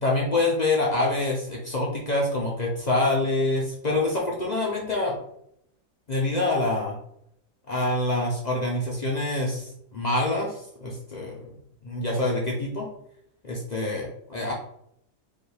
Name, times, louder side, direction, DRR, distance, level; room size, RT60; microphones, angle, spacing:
voice 1, 0.0-5.1 6.1-6.9 7.7-11.4 11.8-12.9 13.4-14.5, left 2 dB, 65° left, -2 dB, 0.4 m, -26 dB
5.4 x 2.3 x 3.3 m, 0.73 s
omnidirectional pair, 1.7 m